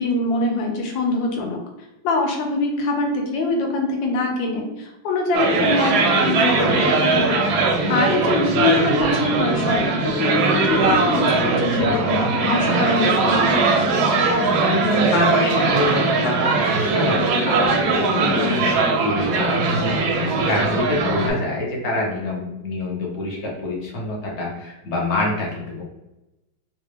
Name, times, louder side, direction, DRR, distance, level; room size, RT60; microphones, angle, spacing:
voice 1, 0.0-1.6 2.0-7.3 7.9-13.5, left 2 dB, 80° left, 2 dB, 1.4 m, -23 dB
sound 1, 5.3-21.3, right 3 dB, 70° right, 1.0 m, -20 dB
voice 2, 14.6-25.8, left 2 dB, 50° left, -2 dB, 0.9 m, -26 dB
3.3 x 2.4 x 3.3 m, 0.95 s
omnidirectional pair, 2.1 m